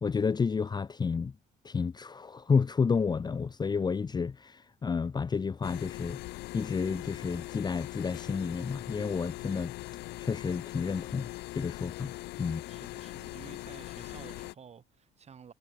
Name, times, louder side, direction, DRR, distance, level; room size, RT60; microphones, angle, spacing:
voice 1, 0.0-1.3 1.6-6.2 6.5-9.7 10.2-11.3 11.5-12.1 12.4-12.6, left 5 dB, 25° left, 0.8 m, -30 dB
sound 1, 5.6-14.5, left 19 dB, 80° left, 0.5 m, -41 dB
voice 2, 12.4-15.5, right 7 dB, 40° right, 5.9 m, -52 dB
cardioid pair, 110°, 17 cm